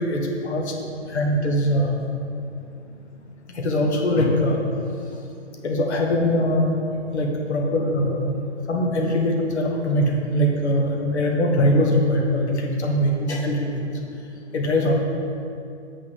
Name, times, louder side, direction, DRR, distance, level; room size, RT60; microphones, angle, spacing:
voice 1, 0.1-0.6 1.1-2.0 3.6-4.6 5.6-6.7 7.1-8.3 8.7-13.6 14.5-15.0, equal, 60° left, 0 dB, 1.3 m, -21 dB
7.9 x 3.7 x 6.6 m, 2.6 s
figure-of-eight pair, 140°, 37 cm